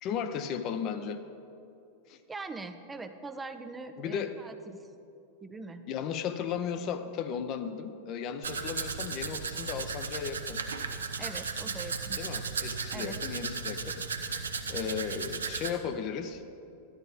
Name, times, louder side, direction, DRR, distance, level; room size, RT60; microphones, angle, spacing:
voice 1, 0.0-1.2 2.1-2.2 4.0-4.4 5.9-10.6 12.2-14.4 14.7-16.4, left 7 dB, 35° left, 9 dB, 0.7 m, -35 dB
voice 2, 2.3-4.8 5.4-5.9 11.2-12.2 12.9-13.2, right 3 dB, 15° right, 8 dB, 0.5 m, -42 dB
Domestic sounds home sounds, 8.4-15.7, right 5 dB, 70° right, 0.7 m, -35 dB
13.0 x 10.5 x 4.0 m, 2.7 s
figure-of-eight pair, 90°, 0 cm